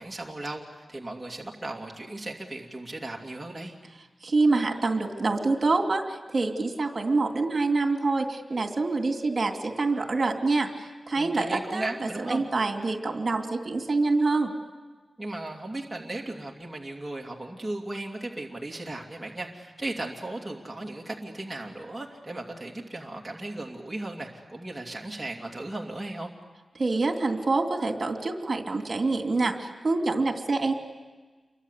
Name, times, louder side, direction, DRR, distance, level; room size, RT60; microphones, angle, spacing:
voice 1, 0.0-3.8 11.1-12.5 15.2-26.3, right 2 dB, 10° right, -2 dB, 2.7 m, -36 dB
voice 2, 4.2-14.5 26.7-30.7, right 3 dB, 45° right, 4 dB, 3.2 m, -26 dB
29.0 x 24.0 x 8.4 m, 1.3 s
wide cardioid pair, 120°, 0 cm